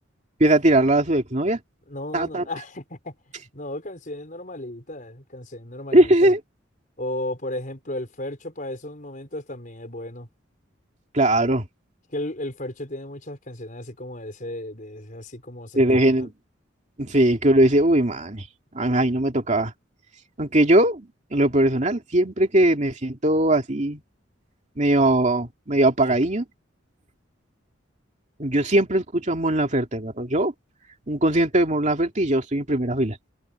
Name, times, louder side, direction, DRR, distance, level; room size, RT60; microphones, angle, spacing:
voice 1, 0.4-1.6 2.1-2.4 5.9-6.4 11.1-11.6 15.8-16.3 17.0-18.5 18.7-19.7 20.4-24.0 24.8-26.4 28.4-30.5 31.1-33.2, right 1 dB, 40° right, 2.6 m, -20 dB
voice 2, 1.9-3.1 3.5-6.3 7.0-10.3 12.1-16.3, left 1 dB, 45° left, 5.2 m, -34 dB
head